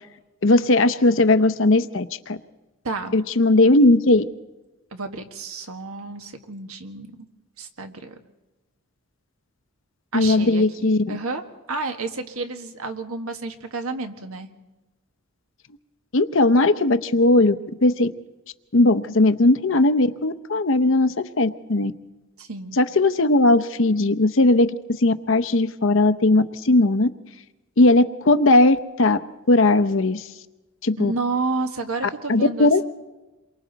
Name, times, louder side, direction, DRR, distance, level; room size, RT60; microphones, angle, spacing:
voice 1, 0.4-2.4 3.1-4.2 10.1-11.2 16.1-17.5 17.8-18.1 18.7-21.9 22.8-24.7 25.0-27.1 27.8-29.2 29.5-30.2 30.8-31.1 32.3-32.8, left 2 dB, 60° left, 12 dB, 0.8 m, -18 dB
voice 2, 2.8-3.2 4.9-7.3 7.6-8.2 10.1-11.4 11.7-14.5 22.4-22.8 31.0-32.8, right 3 dB, 75° right, 6 dB, 1.6 m, -30 dB
28.5 x 23.5 x 4.1 m, 1.1 s
head